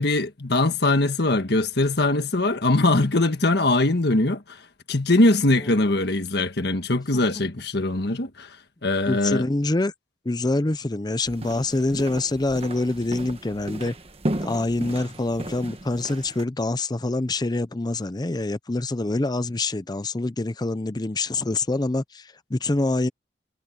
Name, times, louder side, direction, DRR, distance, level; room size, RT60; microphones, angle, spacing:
voice 1, 0.0-4.6 4.9-8.6 8.8-9.5 11.9-12.0, left 2 dB, 60° left, 1.6 m, -22 dB
voice 2, 9.1-9.9 10.3-13.9 14.4-23.1, left 2 dB, 20° left, 0.6 m, -25 dB
sound 1, 11.2-16.4, right 1 dB, 30° right, 1.4 m, -34 dB
head